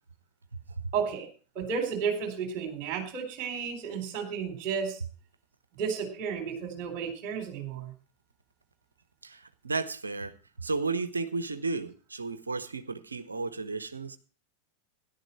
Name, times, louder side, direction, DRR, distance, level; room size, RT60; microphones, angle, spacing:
voice 1, 0.9-1.3 1.5-5.0 5.8-7.9, right 6 dB, 40° right, 4.3 m, -32 dB
voice 2, 9.2-10.3 10.6-14.2, right 3 dB, 75° right, 1.0 m, -33 dB
13.0 x 11.0 x 4.5 m
figure-of-eight pair, 90°, 0 cm